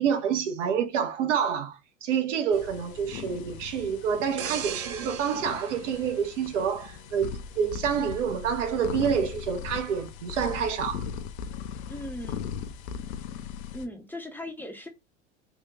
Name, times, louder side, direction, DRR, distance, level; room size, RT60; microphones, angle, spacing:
voice 1, 0.0-1.7 2.0-11.0, right 7 dB, 75° right, 0.8 m, -28 dB
sound 1, 2.5-13.9, left 7 dB, 60° left, 0.6 m, -39 dB
sound 2, 4.4-7.1 7.5-7.7, right 8 dB, 40° right, 0.7 m, -38 dB
voice 2, 11.9-12.6 13.7-14.9, left 1 dB, 5° left, 0.5 m, -38 dB
3.0 x 2.2 x 3.5 m
hypercardioid pair, 85°, 37 cm